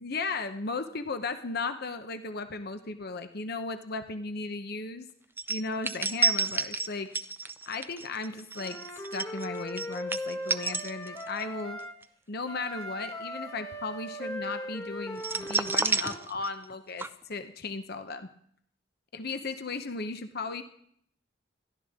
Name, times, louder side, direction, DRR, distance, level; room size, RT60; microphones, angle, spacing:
voice 1, 0.0-5.1 5.5-7.1 7.7-8.8 9.1-11.8 12.3-18.3 19.1-20.6, left 3 dB, 55° left, 8 dB, 0.9 m, -36 dB
sound 1, 5.4-11.4 11.8-12.0 15.2-16.7 17.0-17.1, right 4 dB, 10° right, 0.5 m, -30 dB
Wind instrument woodwind instrument, 8.6-11.9 12.4-16.2, equal, 15° left, 1.7 m, -39 dB
28.5 x 12.0 x 3.7 m, 0.68 s
head